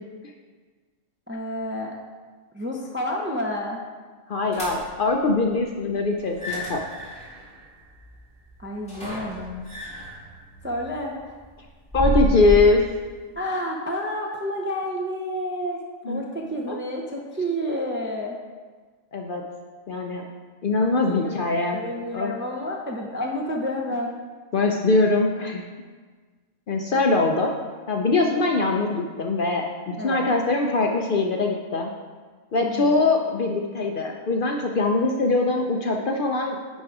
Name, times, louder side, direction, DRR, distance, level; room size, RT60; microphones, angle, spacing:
voice 1, 1.3-1.9 2.5-3.8 8.6-9.6 10.6-11.3 13.4-15.8 16.1-18.4 21.1-21.2 21.7-24.1 30.0-30.3 32.6-33.0, equal, 15° right, 0 dB, 0.4 m, -30 dB
voice 2, 4.3-6.8 11.9-12.8 16.0-16.2 16.7-16.8 19.1-19.4 19.9-20.2 20.6-21.8 22.1-22.3 24.5-25.6 26.7-27.5 27.9-31.9 32.5-36.6, left 3 dB, 55° left, 2 dB, 0.6 m, -22 dB
sound 1, 4.5-5.1 6.2-12.8, equal, 5° left, 2.2 m, -30 dB
9.4 x 3.7 x 4.7 m, 1.4 s
omnidirectional pair, 1.3 m